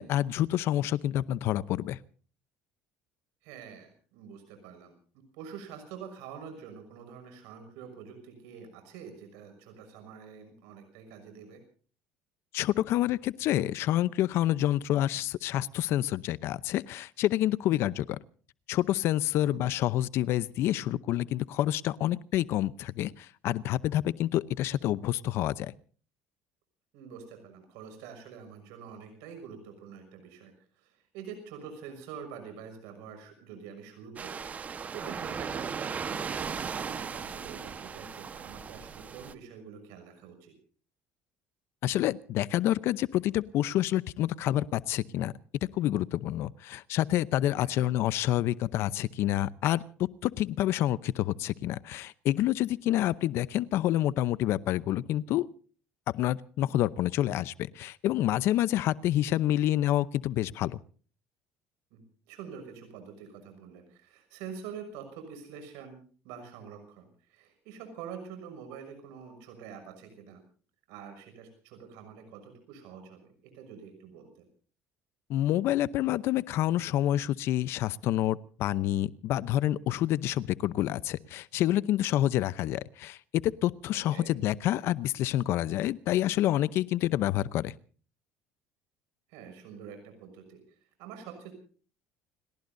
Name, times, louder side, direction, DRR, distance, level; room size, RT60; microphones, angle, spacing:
voice 1, 0.0-2.0 12.5-18.2 18.7-25.7 41.8-45.3 45.7-49.8 50.2-55.5 56.1-60.8 75.3-87.7, left 13 dB, 65° left, 0.7 m, -28 dB
voice 2, 3.4-4.9 5.3-11.6 19.3-19.6 26.9-40.5 47.6-47.9 61.9-70.4 70.9-74.4 83.9-84.3 89.3-91.5, right 7 dB, 85° right, 6.2 m, -46 dB
sound 1, 34.2-39.3, right 6 dB, 30° right, 1.3 m, -37 dB
29.5 x 18.0 x 2.7 m
cardioid pair, 110°, 5 cm